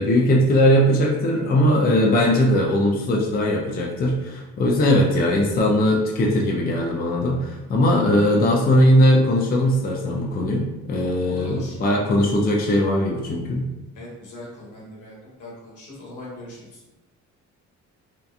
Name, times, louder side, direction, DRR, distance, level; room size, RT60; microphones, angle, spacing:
voice 1, 0.0-13.7, left 1 dB, 30° left, -1 dB, 0.4 m, -19 dB
voice 2, 11.2-11.8 13.9-16.8, left 2 dB, 80° left, -5 dB, 1.1 m, -39 dB
2.8 x 2.3 x 2.3 m, 1.0 s
cardioid pair, 90°, 30 cm